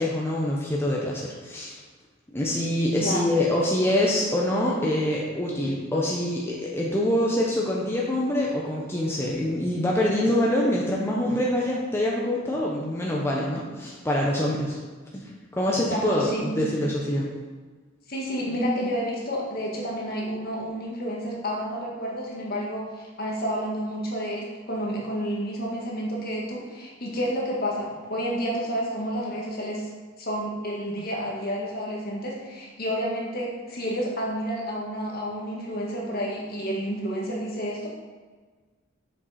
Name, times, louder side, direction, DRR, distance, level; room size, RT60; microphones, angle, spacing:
voice 1, 0.0-1.8 2.3-14.8 15.1-15.2 15.6-17.3, left 1 dB, 10° left, -4 dB, 0.8 m, -25 dB
voice 2, 15.9-16.8 18.1-29.9 30.2-37.9, equal, 50° left, -2 dB, 1.7 m, -30 dB
7.1 x 5.9 x 4.2 m, 1.4 s
head